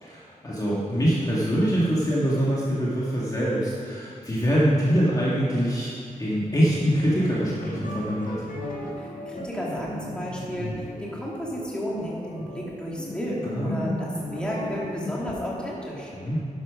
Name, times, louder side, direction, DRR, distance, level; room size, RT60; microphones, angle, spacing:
voice 1, 0.0-5.9 6.2-8.4 13.4-13.8 16.2-16.4, equal, 25° left, -7 dB, 1.9 m, -24 dB
sound 1, 6.5-15.8, left 1 dB, 80° left, 1.7 m, -36 dB
voice 2, 8.9-16.1, equal, 5° left, -5 dB, 2.4 m, -32 dB
11.5 x 10.5 x 5.3 m, 2.5 s
wide cardioid pair, 160°, 14 cm